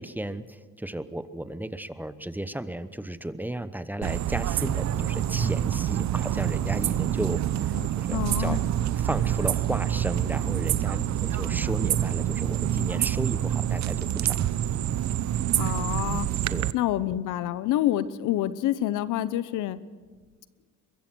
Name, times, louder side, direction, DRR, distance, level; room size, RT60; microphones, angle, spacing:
voice 1, 0.0-8.6 9.0-14.4 16.5-16.7, right 1 dB, 5° right, 12 dB, 1.0 m, -34 dB
sound 1, 4.0-16.7, right 11 dB, 65° right, 0.8 m, -27 dB
sound 2, 4.6-14.5, right 3 dB, 35° right, 3.4 m, -43 dB
sound 3, 4.9-5.1 5.4-5.6 7.7-7.9 8.2-8.3, left 8 dB, 45° left, 0.9 m, -39 dB
voice 2, 8.1-8.6 15.5-16.3 16.7-19.8, left 13 dB, 90° left, 15 dB, 0.9 m, -27 dB
23.0 x 22.5 x 6.2 m, 1.5 s
cardioid pair, 90°, 30 cm